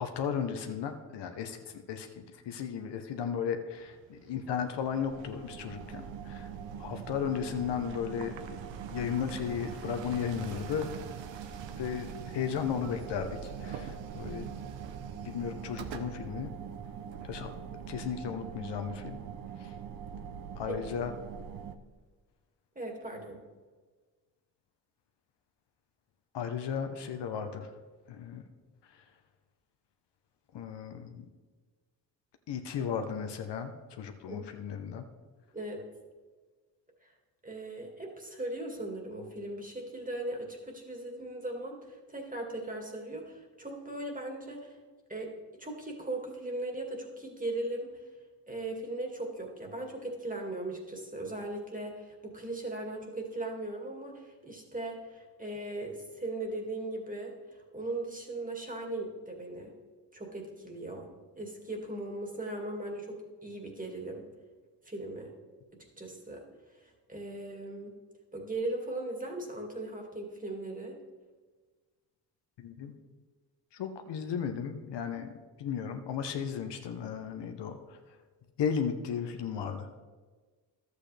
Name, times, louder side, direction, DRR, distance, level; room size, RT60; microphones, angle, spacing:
voice 1, 0.0-6.5 6.8-8.6 8.9-10.9 11.8-14.5 15.2-16.5 17.2-17.5 17.9-19.2 19.6-19.8 20.6-21.1 26.3-27.7 28.1-28.4 28.9-29.0 30.5-31.2 32.5-35.1 72.6-72.9 73.7-75.3 75.6-78.0 78.6-79.9, left 7 dB, 70° left, 6 dB, 1.0 m, -35 dB
sound 1, 3.7-17.8, right 8 dB, 80° right, 0.9 m, -48 dB
sound 2, 4.9-21.8, right 7 dB, 50° right, 0.7 m, -43 dB
voice 2, 22.8-23.4 34.3-34.5 35.5-35.8 37.0-37.1 37.4-44.8 45.1-48.0 48.5-59.7 60.1-61.1 61.4-64.2 64.9-65.3 65.7-66.4 66.8-68.0 68.3-70.9, right 2 dB, 20° right, 1 dB, 2.2 m, -38 dB
12.0 x 8.2 x 3.4 m, 1.4 s
cardioid pair, 70°, 44 cm